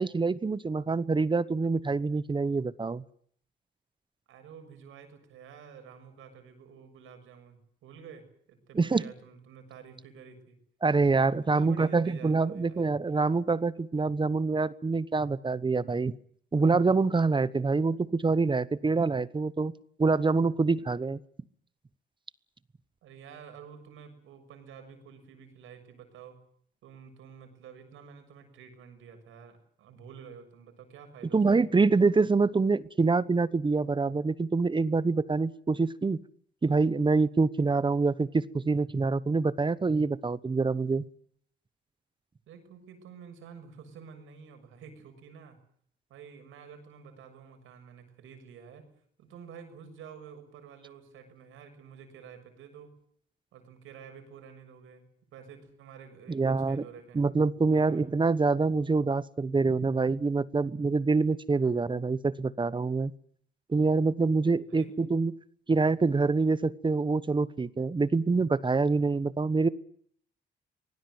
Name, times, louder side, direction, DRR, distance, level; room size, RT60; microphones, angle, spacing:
voice 1, 0.0-3.0 8.7-9.0 10.8-16.2 16.5-19.7 20.0-21.2 31.3-36.2 36.6-41.1 56.3-56.8 57.1-63.1 63.7-65.3 65.7-69.7, right 4 dB, 25° right, 17 dB, 1.0 m, -26 dB
voice 2, 4.3-10.6 11.4-12.9 23.0-26.4 26.8-31.8 42.5-45.6 46.1-48.9 49.2-52.9 53.5-55.0 55.3-57.2 57.7-58.0 64.7-64.9, right 7 dB, 85° right, 8 dB, 6.9 m, -49 dB
25.0 x 19.0 x 7.9 m, 0.62 s
cardioid pair, 90°, 20 cm